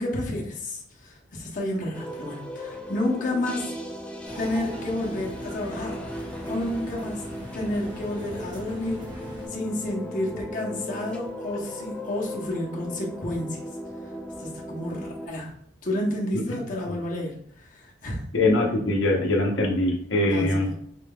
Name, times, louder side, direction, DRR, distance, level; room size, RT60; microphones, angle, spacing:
voice 1, 0.0-3.7 4.3-6.0 6.5-7.2 7.5-9.0 9.5-13.6 14.4-15.5 15.8-18.2 20.3-20.7, left 1 dB, 45° left, -2 dB, 0.8 m, -30 dB
sound 1, 1.9-15.3, left 1 dB, 5° left, 0.3 m, -37 dB
sound 2, 4.2-9.5, equal, 25° right, 0.9 m, -41 dB
voice 2, 18.3-20.7, left 2 dB, 80° left, 0 dB, 0.8 m, -22 dB
4.2 x 3.4 x 2.3 m, 0.64 s
head